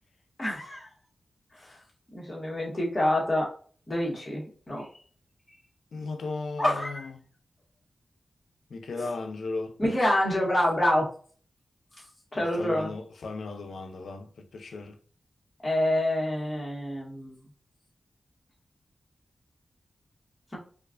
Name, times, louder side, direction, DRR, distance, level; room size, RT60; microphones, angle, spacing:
voice 1, 0.4-0.9 1.6-1.8 2.1-3.5 3.9-4.9 6.6-7.1 9.0-9.1 9.8-11.1 12.3-12.9 15.6-17.4, left 1 dB, 30° left, 1.6 m, -27 dB
voice 2, 5.9-7.2 8.7-9.8 12.3-14.3 14.5-15.0, left 3 dB, 85° left, 0.5 m, -36 dB
4.4 x 2.4 x 2.5 m
cardioid pair, 70°, 0 cm